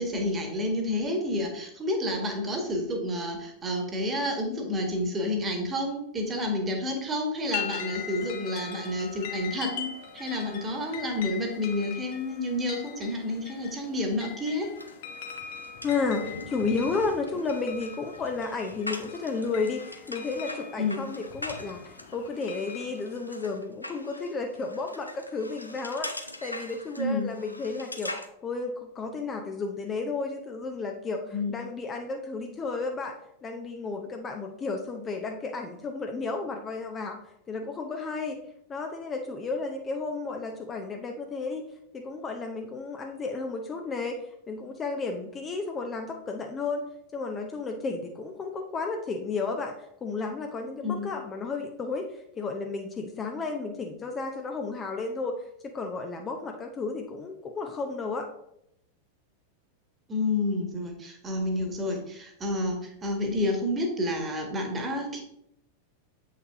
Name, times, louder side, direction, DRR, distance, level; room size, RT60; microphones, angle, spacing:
voice 1, 0.0-14.7 20.8-21.0 27.0-27.3 31.3-31.5 50.8-51.1 60.1-65.2, left 1 dB, 20° right, 4 dB, 1.7 m, -29 dB
sound 1, 7.5-23.2, left 8 dB, 50° left, 0.9 m, -41 dB
sound 2, 14.8-28.3, left 1 dB, 85° left, 0.7 m, -42 dB
voice 2, 15.8-26.1 26.4-28.1 28.4-33.1 33.4-37.2 37.5-38.4 38.7-41.7 41.9-44.2 44.5-46.8 47.1-49.7 50.0-55.3 55.6-58.3, left 4 dB, 20° left, 3 dB, 0.8 m, -32 dB
8.1 x 5.7 x 3.6 m, 0.76 s
figure-of-eight pair, 90°, 0 cm